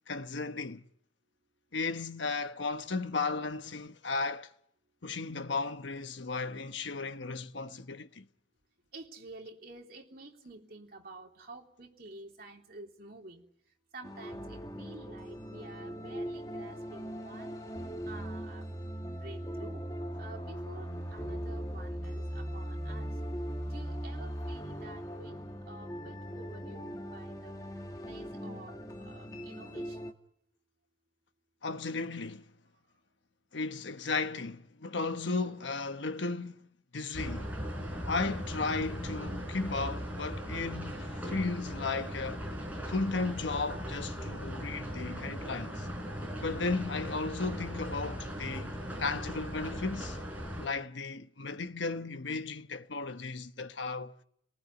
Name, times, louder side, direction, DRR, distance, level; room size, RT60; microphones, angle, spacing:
voice 1, 0.1-0.8 1.7-4.5 5.0-8.2 31.6-32.5 33.5-36.7 36.9-37.5 38.0-42.5 42.9-45.9 46.4-50.2 50.6-54.2, left 3 dB, 75° left, 1.1 m, -35 dB
voice 2, 8.9-13.4 13.9-17.6 18.0-18.8 19.1-19.8 20.2-25.4 25.7-27.6 28.1-30.1, right 2 dB, 50° right, 3.2 m, -50 dB
sound 1, 14.0-30.1, equal, 20° left, 1.5 m, -39 dB
sound 2, 37.1-50.7, equal, 10° right, 4.6 m, -38 dB
29.0 x 19.0 x 9.7 m
head